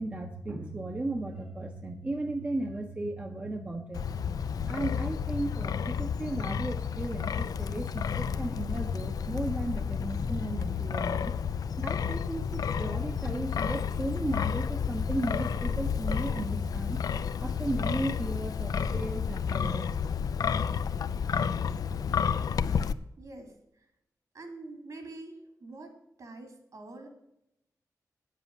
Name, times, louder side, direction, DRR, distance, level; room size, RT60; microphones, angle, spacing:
voice 1, 0.0-4.4 4.7-11.3 11.7-17.0 17.4-19.9, right 2 dB, 20° right, 4 dB, 0.8 m, -35 dB
Wind, 3.9-22.9, left 7 dB, 80° left, 0.5 m, -31 dB
voice 2, 23.2-23.5 24.3-25.9 26.2-27.1, right 2 dB, 60° right, 5 dB, 2.7 m, -45 dB
9.5 x 7.6 x 6.5 m, 0.81 s
wide cardioid pair, 175°, 6 cm